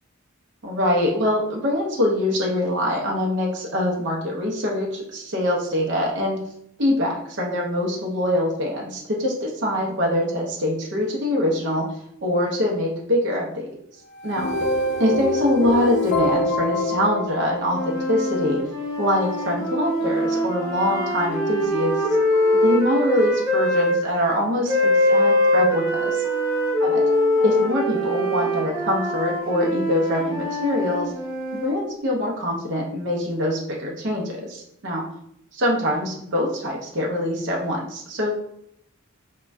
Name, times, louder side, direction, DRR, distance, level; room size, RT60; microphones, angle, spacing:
voice 1, 0.6-6.4 6.8-11.8 12.2-13.7 14.2-14.5 15.0-18.6 19.0-22.0 22.6-26.2 26.8-27.0 27.4-31.1 31.5-35.0 35.5-38.3, left 1 dB, 55° right, -2 dB, 0.6 m, -24 dB
sound 1, 14.1-18.4, left 1 dB, 50° left, 0.4 m, -25 dB
sound 2, 17.7-24.0 24.7-31.8, equal, 15° right, 0.8 m, -23 dB
Wind instrument woodwind instrument, 20.0-28.8, left 1 dB, 15° left, 1.2 m, -36 dB
2.5 x 2.2 x 3.2 m, 0.73 s
head